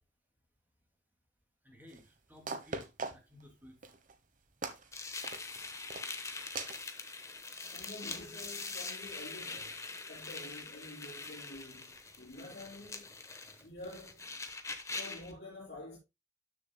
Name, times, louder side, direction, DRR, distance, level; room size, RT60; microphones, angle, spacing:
voice 1, 1.6-3.8 10.2-10.3, left 1 dB, 10° right, 2.3 m, -57 dB
sound 1, 1.9-2.0 2.5-3.4 3.8-4.1 4.6-4.9 5.2-5.6 5.9-6.2 6.6-6.8, right 4 dB, 45° right, 1.1 m, -40 dB
sound 2, 4.9-15.3, left 3 dB, 15° left, 1.1 m, -43 dB
voice 2, 7.7-13.1 13.6-14.2 15.0-16.0, left 2 dB, 65° left, 3.5 m, -48 dB
12.5 x 6.8 x 2.2 m
head